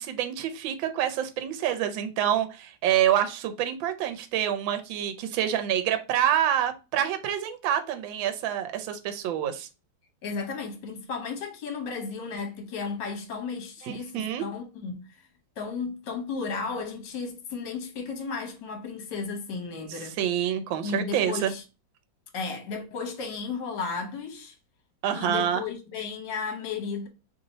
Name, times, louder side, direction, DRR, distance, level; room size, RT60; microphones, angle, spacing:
voice 1, 0.0-9.7 13.8-14.4 20.2-21.5 25.0-25.6, right 10 dB, 80° right, 1.4 m, -27 dB
voice 2, 10.2-15.2 15.6-20.2 20.8-21.6 22.3-24.6 25.1-27.1, left 5 dB, 65° left, 1.6 m, -34 dB
3.4 x 2.7 x 3.9 m
omnidirectional pair, 2.1 m